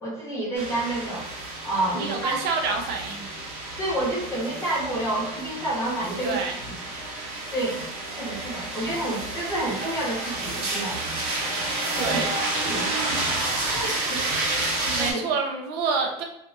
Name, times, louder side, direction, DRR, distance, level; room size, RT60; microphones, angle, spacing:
voice 1, 0.0-1.3 1.6-2.4 3.8-6.8 7.5-7.8 8.1-11.0 11.9-12.2 12.7-13.3 13.7-14.5 14.8-15.2, right 1 dB, 15° left, -7 dB, 0.9 m, -29 dB
sound 1, 0.5-15.1, right 2 dB, 80° right, 1.0 m, -30 dB
voice 2, 1.9-3.3 6.2-6.6 11.9-12.4 15.0-16.2, right 4 dB, 50° right, 3 dB, 0.5 m, -27 dB
2.7 x 2.4 x 2.4 m, 0.79 s
cardioid pair, 150°, 21 cm